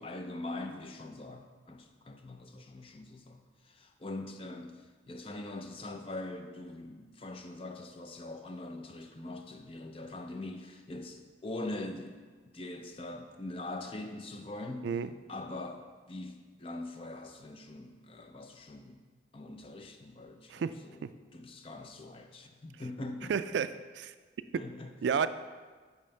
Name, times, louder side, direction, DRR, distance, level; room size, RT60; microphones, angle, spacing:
voice 1, 0.0-14.9 15.3-19.0 19.3-23.3 24.6-24.9, left 2 dB, 30° left, 5 dB, 0.5 m, -43 dB
voice 2, 23.3-24.1 25.0-25.3, right 6 dB, 65° right, 13 dB, 0.3 m, -31 dB
8.5 x 3.1 x 5.6 m, 1.4 s
head